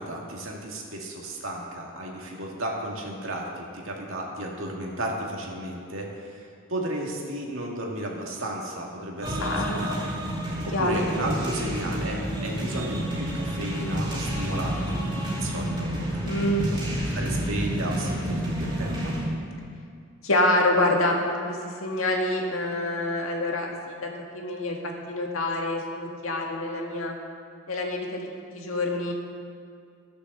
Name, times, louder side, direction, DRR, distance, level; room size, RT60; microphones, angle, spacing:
voice 1, 0.0-10.0 10.5-15.9 16.6-16.8 17.1-19.1, right 1 dB, 70° right, -1 dB, 2.1 m, -33 dB
sound 1, 9.2-19.3, equal, 25° right, 2.5 m, -29 dB
voice 2, 9.4-9.8 10.7-10.9 16.2-16.7 20.2-24.8 25.1-27.1 27.7-28.3 28.5-29.1, left 1 dB, 80° left, 0 dB, 1.8 m, -26 dB
15.5 x 6.8 x 6.8 m, 2.3 s
head